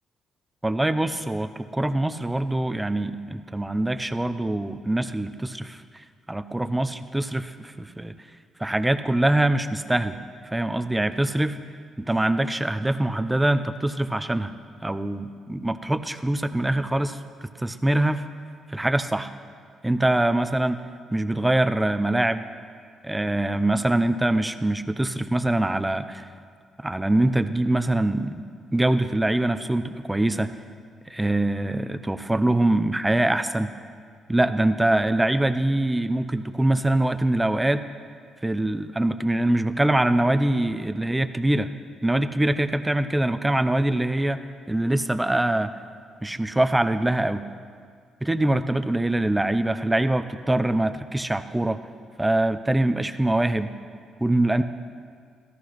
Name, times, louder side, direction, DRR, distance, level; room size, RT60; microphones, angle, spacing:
voice 1, 0.6-5.8 6.3-8.1 8.6-10.2 10.5-11.6 12.0-14.5 14.8-18.2 18.7-19.3 19.8-20.8 21.1-22.4 23.0-26.3 26.8-28.4 28.7-30.5 31.1-33.7 34.3-37.8 38.4-41.7 42.0-44.4 44.7-45.7 46.2-47.4 48.2-51.8 52.2-53.7 54.2-54.6, right 1 dB, 10° right, 10 dB, 0.7 m, -23 dB
14.5 x 14.0 x 6.0 m, 2.1 s
cardioid pair, 90°, 0 cm